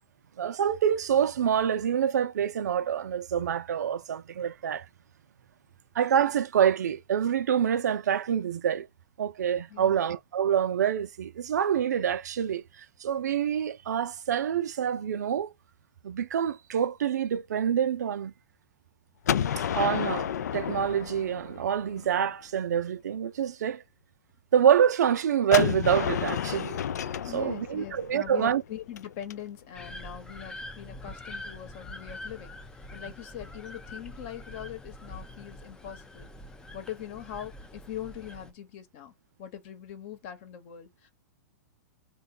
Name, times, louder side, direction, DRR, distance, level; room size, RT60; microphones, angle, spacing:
voice 1, 0.4-4.9 5.9-8.9 9.2-15.5 16.0-18.3 19.7-23.8 24.5-26.8 27.3-28.6, right 9 dB, 75° right, 0.5 m, -26 dB
voice 2, 9.7-10.0 27.2-32.6 32.9-36.3 36.7-39.1 39.4-41.1, left 10 dB, 45° left, 1.0 m, -41 dB
Gunshot gunfire, 19.3-22.1 25.5-29.3, left 9 dB, 75° left, 0.4 m, -31 dB
sound 1, 29.7-38.5, left 1 dB, 10° left, 0.4 m, -44 dB
3.4 x 2.3 x 3.7 m
hypercardioid pair, 125°, 9 cm